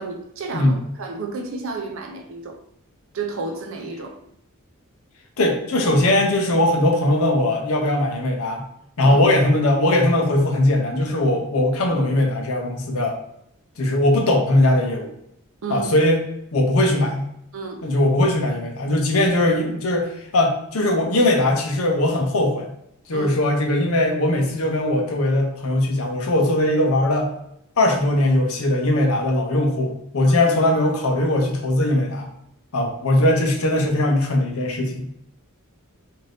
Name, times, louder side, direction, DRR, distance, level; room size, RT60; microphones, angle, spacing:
voice 1, 0.0-2.6 3.1-4.2 9.0-9.3 15.6-15.9 17.5-17.8 23.1-23.3 30.3-30.4, right 4 dB, 65° right, 3 dB, 0.5 m, -31 dB
voice 2, 5.4-8.6 9.0-13.2 13.8-15.1 15.7-16.2 16.5-17.3 17.8-22.7 23.1-27.3 27.8-32.3 32.7-35.1, left 1 dB, 75° left, 2 dB, 0.7 m, -20 dB
2.7 x 2.5 x 3.3 m, 0.75 s
head